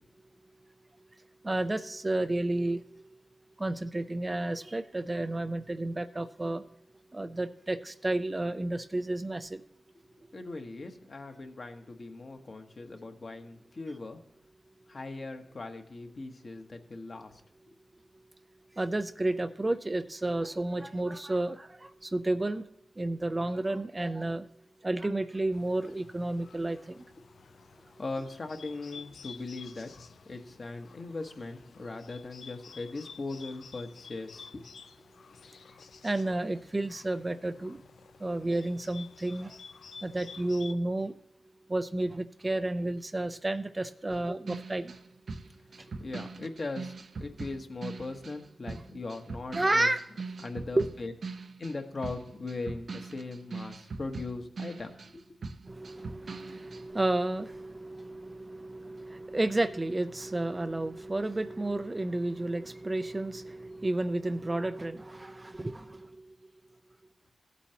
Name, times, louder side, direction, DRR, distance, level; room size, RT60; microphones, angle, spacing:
voice 1, 1.4-3.0 3.6-6.6 7.1-9.6 18.8-22.7 23.0-24.5 24.8-27.0 36.0-37.8 38.2-39.6 40.0-41.1 41.7-44.9 45.8-45.9 49.5-50.0 50.7-50.9 55.7-66.2, right 2 dB, 20° right, 10 dB, 0.4 m, -31 dB
voice 2, 10.3-14.2 14.9-17.4 28.0-34.7 45.9-49.9 50.4-51.1 51.6-55.2, left 3 dB, 45° left, 4 dB, 1.2 m, -39 dB
Bird, 25.5-40.7, left 6 dB, 75° left, 0.4 m, -52 dB
sound 1, 44.1-48.4 48.7-55.2 55.4-56.9, right 4 dB, 60° right, 0.7 m, -41 dB
16.0 x 8.3 x 2.9 m, 0.80 s
wide cardioid pair, 95°, 0 cm